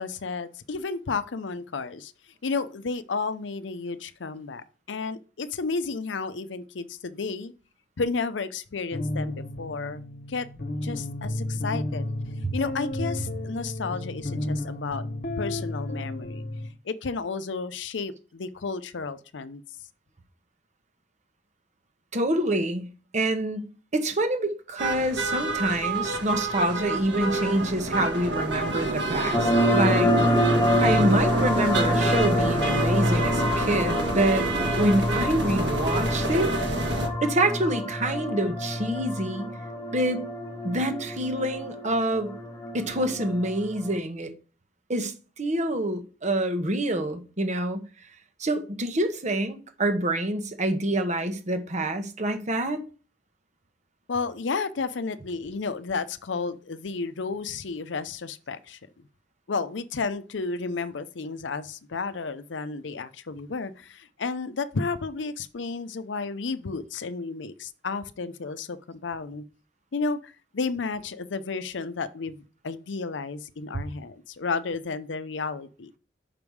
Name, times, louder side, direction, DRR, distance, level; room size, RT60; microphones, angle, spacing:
voice 1, 0.0-2.1 2.4-7.5 8.0-10.0 10.3-10.5 10.8-12.0 12.5-15.0 15.4-16.4 16.9-19.6 54.1-58.8 59.5-69.4 69.9-75.9, left 4 dB, 90° left, 0.6 m, -32 dB
sound 1, 8.9-16.7, left 1 dB, 55° left, 1.0 m, -32 dB
voice 2, 22.1-22.9 23.1-23.7 23.9-30.1 30.8-34.5 34.8-36.5 37.2-39.5 39.9-40.2 40.6-42.3 42.7-44.3 44.9-47.8 48.4-52.8, right 1 dB, 40° right, 1.1 m, -26 dB
sound 2, 24.8-37.1, right 2 dB, 70° right, 1.7 m, -28 dB
sound 3, 29.3-43.9, equal, 15° left, 1.3 m, -27 dB
5.8 x 5.3 x 4.7 m
head